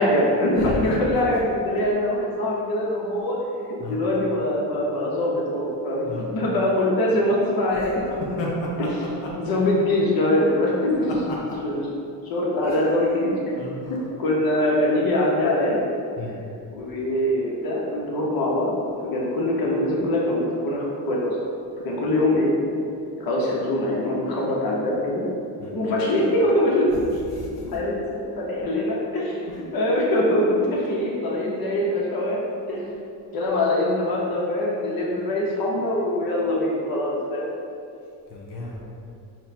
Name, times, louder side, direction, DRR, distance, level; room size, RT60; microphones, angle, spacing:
voice 1, 0.0-3.4 3.9-8.2 9.4-11.9 12.2-13.3 13.9-15.8 16.7-18.8 19.0-21.4 21.8-22.5 23.2-25.3 25.7-29.4 29.7-32.4 32.7-32.9 33.3-37.5, left 1 dB, 55° left, -4 dB, 1.0 m, -23 dB
voice 2, 0.6-1.0 3.8-4.0 6.0-6.3 7.7-7.8 8.1-8.8 12.6-12.8 13.1-13.3 13.6-13.9 16.2-16.3 25.6-25.7 27.3-27.7 32.7-32.8 38.3-38.8, left 1 dB, 80° left, -3 dB, 0.8 m, -33 dB
4.2 x 2.2 x 4.1 m, 2.5 s
cardioid pair, 100°, 42 cm